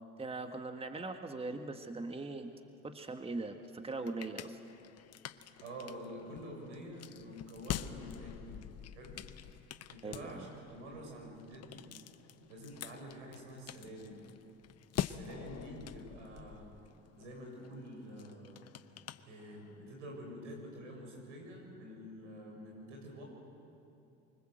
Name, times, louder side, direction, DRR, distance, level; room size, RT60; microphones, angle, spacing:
voice 1, 0.2-2.5 2.8-4.6 10.0-10.5, right 3 dB, 15° right, 6 dB, 1.8 m, -40 dB
sound 1, 3.6-19.9, left 11 dB, 45° left, 1.0 m, -46 dB
voice 2, 5.6-8.6 8.9-9.2 9.9-11.9 12.5-14.2 15.0-16.7 17.1-18.7 19.2-23.2, equal, 85° right, 1 dB, 6.7 m, -48 dB
25.5 x 24.0 x 7.9 m, 2.8 s
hypercardioid pair, 70°, 35 cm